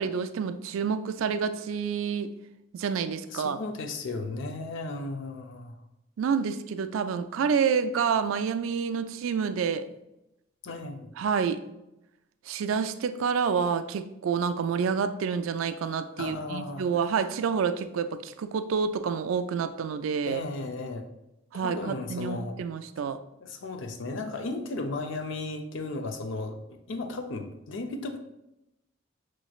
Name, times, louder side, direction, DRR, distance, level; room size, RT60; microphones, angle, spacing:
voice 1, 0.0-2.3 2.7-3.6 6.2-9.9 11.2-11.6 12.5-20.4 21.5-23.2, right 6 dB, 80° right, 10 dB, 0.3 m, -28 dB
voice 2, 3.3-5.8 10.6-11.1 16.2-17.1 20.2-21.1 21.5-22.6 23.4-28.2, left 2 dB, 65° left, 5 dB, 0.5 m, -35 dB
6.0 x 3.1 x 2.3 m, 0.90 s
head